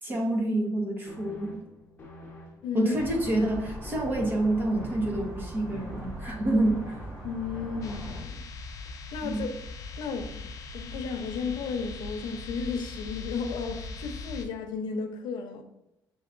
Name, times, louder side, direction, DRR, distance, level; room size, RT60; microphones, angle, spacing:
voice 1, 0.0-1.6 2.7-7.0 9.2-9.5, right 1 dB, 30° right, 1.1 m, -28 dB
sound 1, 1.1-8.5, left 1 dB, 20° left, 1.0 m, -47 dB
voice 2, 2.6-3.0 7.2-8.4 8.9-9.5 10.0-10.3 10.7-15.6, left 5 dB, 85° left, 0.7 m, -33 dB
sound 2, 3.0-8.2, equal, 60° right, 1.8 m, -41 dB
sound 3, 7.8-14.4, left 3 dB, 45° left, 0.7 m, -40 dB
7.0 x 3.0 x 2.5 m
cardioid pair, 155°, 8 cm